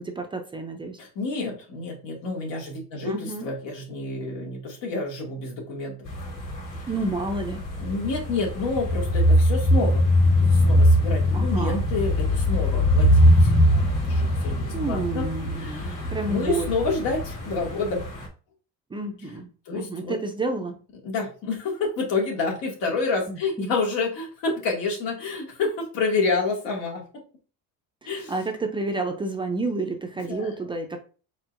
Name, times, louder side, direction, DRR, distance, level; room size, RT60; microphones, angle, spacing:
voice 1, 0.0-1.0 3.0-3.5 6.9-7.6 11.3-11.9 14.7-16.7 18.9-20.8 23.3-23.8 28.0-31.0, right 3 dB, 15° right, 4 dB, 0.4 m, -30 dB
voice 2, 1.0-6.1 7.8-13.5 14.1-15.3 15.6-18.0 19.7-20.2 21.0-27.0 28.1-28.3 30.3-30.5, left 3 dB, 85° left, 0 dB, 2.1 m, -29 dB
sound 1, 6.1-18.3, equal, 50° left, 2.4 m, -22 dB
4.7 x 4.4 x 2.5 m, 0.36 s
cardioid pair, 160°, 34 cm